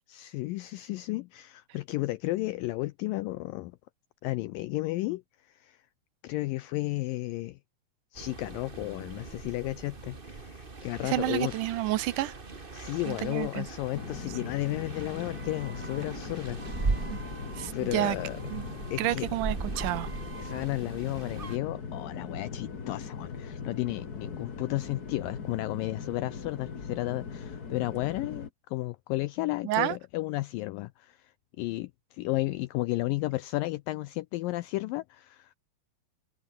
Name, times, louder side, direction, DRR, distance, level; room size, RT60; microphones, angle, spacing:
voice 1, 0.1-3.8 4.2-5.9 6.2-7.6 8.1-11.5 12.7-17.4 17.7-18.4 18.9-19.3 20.4-35.5, left 19 dB, 90° left, 1.9 m, -33 dB
sound 1, 8.2-21.6, right 3 dB, 55° right, 0.5 m, -39 dB
voice 2, 11.0-12.3 13.1-13.7 17.1-17.2 17.6-18.2 18.5-18.6 19.0-20.1 29.6-30.0, right 15 dB, 75° right, 1.9 m, -29 dB
sound 2, 13.9-28.5, left 5 dB, 35° left, 1.5 m, -40 dB
omnidirectional pair, 4.6 m